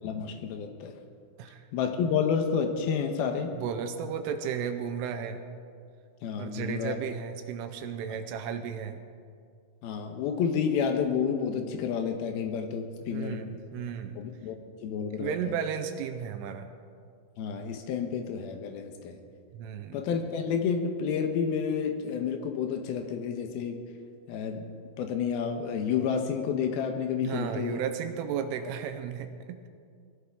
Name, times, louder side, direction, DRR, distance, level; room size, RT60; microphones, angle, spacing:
voice 1, 0.0-1.0 1.7-3.5 6.2-7.0 9.8-13.4 14.2-14.6 14.8-15.5 17.4-19.2 19.9-23.8 24.3-24.7 25.0-27.8, left 6 dB, 90° left, 4 dB, 2.1 m, -30 dB
voice 2, 3.5-5.4 6.4-9.0 13.1-14.2 15.2-16.7 19.5-20.0 27.2-29.7, right 8 dB, 85° right, 7 dB, 3.2 m, -34 dB
22.5 x 16.0 x 3.6 m, 2.2 s
omnidirectional pair, 5.8 m